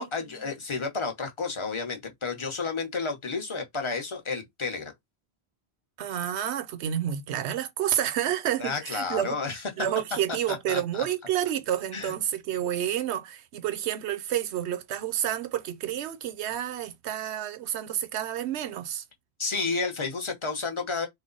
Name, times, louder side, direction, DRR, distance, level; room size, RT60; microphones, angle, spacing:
voice 1, 0.0-4.9 8.6-9.6 10.5-11.1 11.9-12.1 19.4-21.1, left 4 dB, 30° left, 0.8 m, -31 dB
voice 2, 6.0-9.4 9.8-19.0, right 10 dB, 90° right, 0.9 m, -29 dB
3.2 x 2.0 x 3.8 m
omnidirectional pair, 1.1 m